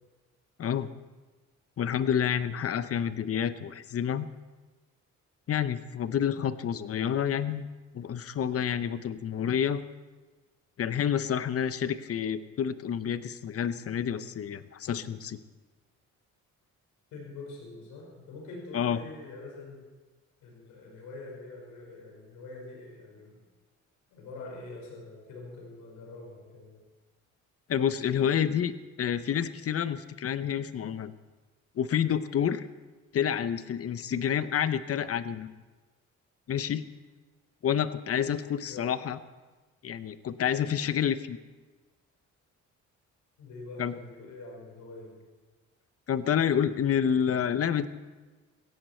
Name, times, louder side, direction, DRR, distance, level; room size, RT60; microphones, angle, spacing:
voice 1, 1.8-4.3 5.5-7.7 7.9-9.8 10.8-15.4 18.7-19.0 27.7-28.7 29.0-31.1 31.8-32.7 33.1-35.5 36.5-36.8 37.6-39.2 39.8-41.4 43.8-44.0 46.1-47.9, left 8 dB, 50° left, 13 dB, 0.9 m, -28 dB
voice 2, 17.1-19.9 20.4-23.4 24.1-26.8 38.6-38.9 43.4-45.2, left 2 dB, 90° left, -1 dB, 5.2 m, -45 dB
16.5 x 15.5 x 4.5 m, 1.3 s
cardioid pair, 90°, 30 cm